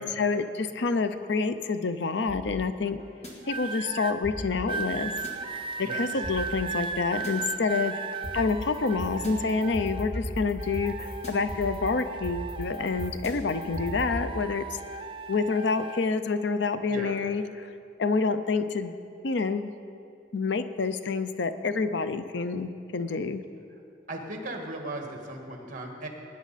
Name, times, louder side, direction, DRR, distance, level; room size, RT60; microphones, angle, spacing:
voice 1, 0.0-3.0 3.5-5.1 5.8-7.9 8.3-14.7 15.3-17.7 18.0-18.9 19.2-19.7 20.3-23.4, left 4 dB, 60° left, 11 dB, 0.5 m, -28 dB
sound 1, 2.3-3.3 4.2-5.3 6.2-7.3 8.2-14.1, equal, 35° left, 2.0 m, -38 dB
sound 2, 3.4-4.1 4.7-10.2 10.6-13.2 13.5-16.0 16.8-17.1, right 5 dB, 25° right, 0.5 m, -37 dB
voice 2, 24.1-26.1, right 1 dB, 45° right, 2 dB, 1.7 m, -37 dB
19.5 x 9.3 x 4.1 m, 2.6 s
head